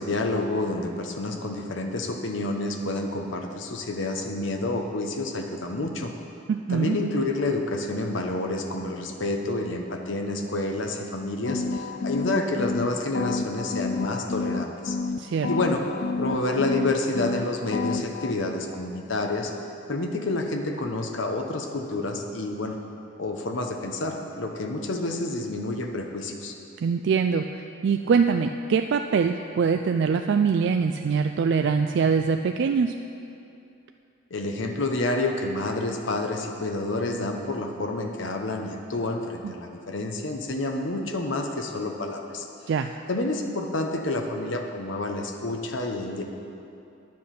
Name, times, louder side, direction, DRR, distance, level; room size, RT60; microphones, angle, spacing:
voice 1, 0.0-6.1 6.7-15.0 15.5-15.8 16.2-19.5 19.9-22.8 23.2-26.5 34.3-42.5 43.1-46.2, left 2 dB, 70° left, 3 dB, 0.9 m, -29 dB
voice 2, 6.5-7.0 15.2-15.5 26.8-32.9 39.4-39.5 42.7-42.9, right 5 dB, 60° right, 6 dB, 0.3 m, -23 dB
sound 1, 11.4-12.9 13.1-15.2 15.4-17.4 17.7-18.3, left 4 dB, 55° left, 0.4 m, -29 dB
10.5 x 7.5 x 5.8 m, 2.7 s
head